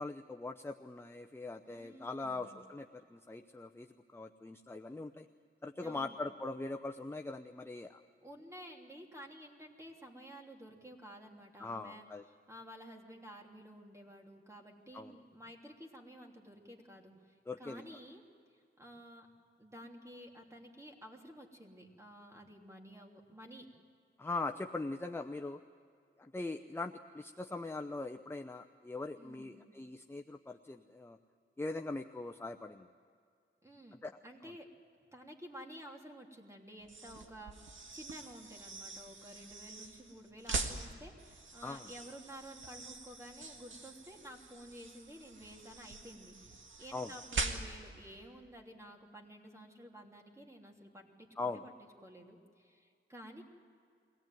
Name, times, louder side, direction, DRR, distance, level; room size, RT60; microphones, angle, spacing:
voice 1, 0.0-3.9 4.1-5.3 5.6-8.0 11.6-12.2 14.9-15.1 17.5-17.8 24.2-25.6 26.2-31.2 31.6-32.9 34.0-34.2 41.6-41.9 46.9-47.1 51.4-51.6, left 3 dB, 10° left, 6 dB, 0.7 m, -41 dB
voice 2, 1.7-2.6 5.8-6.2 8.2-18.2 18.8-19.3 19.6-23.6 29.2-29.7 33.6-34.0 34.2-34.7 35.1-46.5 46.8-51.7 52.0-53.4, equal, 15° right, 1 dB, 3.2 m, -52 dB
sound 1, 36.8-48.0, right 4 dB, 65° right, 1.9 m, -43 dB
23.0 x 18.0 x 9.2 m, 2.3 s
wide cardioid pair, 90°, 21 cm